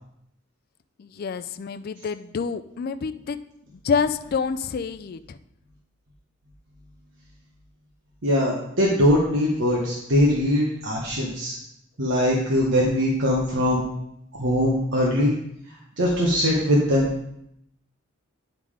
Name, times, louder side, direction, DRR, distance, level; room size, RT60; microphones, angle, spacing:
voice 1, 1.0-3.4 3.8-5.4, left 5 dB, 50° left, 10 dB, 0.3 m, -27 dB
voice 2, 8.2-11.5 12.0-13.8 14.3-15.3 16.0-17.1, equal, 65° right, -3 dB, 1.2 m, -21 dB
9.3 x 3.7 x 4.9 m, 0.77 s
head